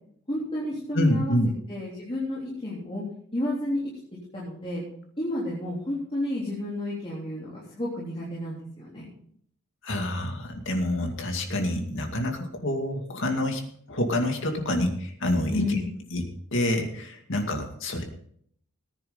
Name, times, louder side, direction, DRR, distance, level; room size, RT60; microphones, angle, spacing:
voice 1, 0.3-1.4 1.7-3.0 3.3-3.8 4.3-4.8 5.2-9.0 15.5-15.8, left 1 dB, 25° left, -7 dB, 3.4 m, -31 dB
voice 2, 0.9-1.5 9.8-13.6 13.9-15.8 16.1-18.0, left 1 dB, 60° left, 3 dB, 2.3 m, -27 dB
18.5 x 9.9 x 3.9 m, 0.64 s
head